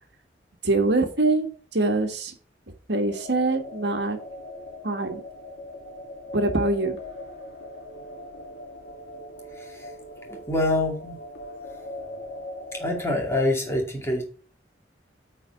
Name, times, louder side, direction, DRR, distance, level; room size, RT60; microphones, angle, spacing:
voice 1, 0.6-2.3 2.9-4.2 4.8-5.2 6.3-7.0, right 2 dB, 70° right, 5 dB, 1.7 m, -24 dB
sound 1, 3.0-13.1, left 1 dB, 90° left, 2.5 m, -40 dB
voice 2, 9.6-9.9 10.3-11.2 12.7-14.2, left 2 dB, 15° left, 1 dB, 2.2 m, -26 dB
9.2 x 4.4 x 5.3 m, 0.40 s
head